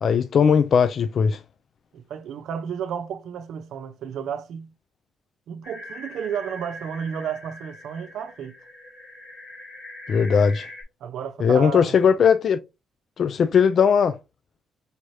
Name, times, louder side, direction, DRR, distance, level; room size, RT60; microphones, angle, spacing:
voice 1, 0.0-1.4 10.1-10.7 11.4-12.6 13.2-14.2, left 6 dB, 55° left, 0.3 m, -19 dB
voice 2, 1.9-4.7 5.5-8.5 11.0-12.0, right 8 dB, 75° right, 0.6 m, -32 dB
sound 1, 5.6-10.8, left 1 dB, 80° left, 2.2 m, -42 dB
4.9 x 3.2 x 2.6 m
cardioid pair, 105°, 0 cm